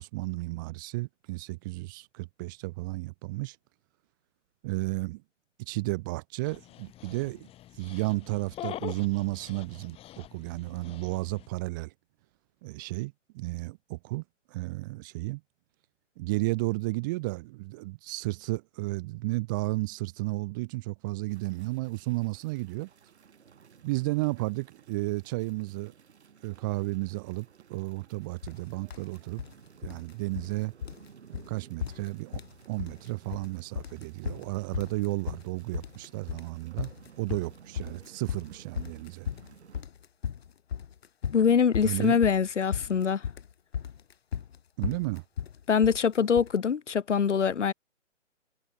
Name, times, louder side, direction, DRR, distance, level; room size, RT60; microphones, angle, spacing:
voice 1, 0.0-3.6 4.6-5.2 5.6-7.5 7.8-11.9 12.6-15.4 16.2-22.9 23.8-25.9 26.4-29.4 29.8-30.7 31.3-32.4 32.7-36.9 37.2-39.3 41.8-42.2 44.8-45.2, right 23 dB, 15° right, 0.8 m, -33 dB
Dog, 6.4-11.5, left 13 dB, 15° left, 3.3 m, -44 dB
sound 1, 21.3-39.8, right 7 dB, 60° right, 4.4 m, -56 dB
sound 2, 28.4-28.6 28.9-29.5 29.8-30.6 30.8-31.1 31.3-31.5 31.8-32.5 32.8-33.5 33.8-46.6, left 8 dB, 55° left, 3.2 m, -36 dB
voice 2, 41.3-43.2 45.7-47.7, left 7 dB, 70° left, 1.3 m, -24 dB
figure-of-eight pair, 140°, 38 cm